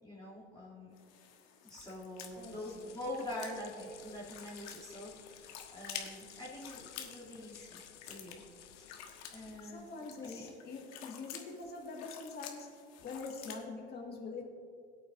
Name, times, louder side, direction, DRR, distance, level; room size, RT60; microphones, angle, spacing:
voice 1, 0.0-0.9 1.6-8.4 8.8-8.9 9.3-9.8 10.2-10.6, left 1 dB, 10° left, -10 dB, 2.9 m, -45 dB
sound 1, 0.9-13.6, left 9 dB, 50° left, 1.4 m, -50 dB
sound 2, 2.1-9.9, left 10 dB, 85° left, 0.7 m, -56 dB
voice 2, 2.4-2.8 9.6-12.7 13.0-14.4, left 4 dB, 30° left, -1 dB, 1.9 m, -44 dB
17.5 x 8.6 x 2.7 m, 2.3 s
hypercardioid pair, 95°, 35 cm